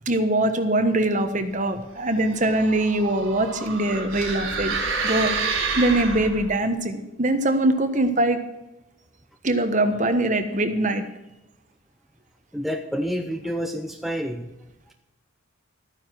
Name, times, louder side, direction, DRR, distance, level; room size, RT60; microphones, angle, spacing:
voice 1, 0.1-4.8 5.0-5.4 5.7-8.4 9.4-11.0, right 1 dB, 35° right, 7 dB, 1.3 m, -22 dB
sound 1, 2.1-6.6, right 4 dB, 70° right, 3.4 m, -29 dB
voice 2, 12.5-14.5 14.9-15.0, equal, ahead, 4 dB, 0.7 m, -28 dB
13.5 x 9.7 x 6.1 m, 0.96 s
head